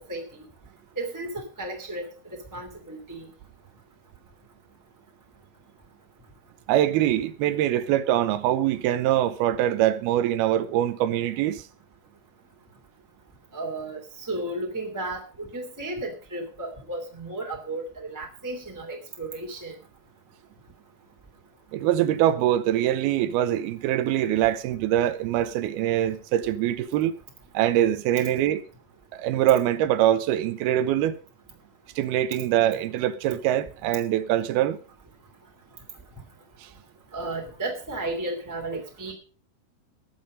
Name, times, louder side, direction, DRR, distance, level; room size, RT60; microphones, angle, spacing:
voice 1, 0.1-0.4 1.0-3.3 13.5-19.8 37.1-39.1, right 2 dB, 5° right, 2.0 m, -34 dB
voice 2, 6.7-11.6 21.7-27.2 27.5-28.6 29.1-31.2 32.0-34.8 36.6-36.7, right 12 dB, 75° right, 2.6 m, -23 dB
20.0 x 7.2 x 5.2 m
omnidirectional pair, 4.8 m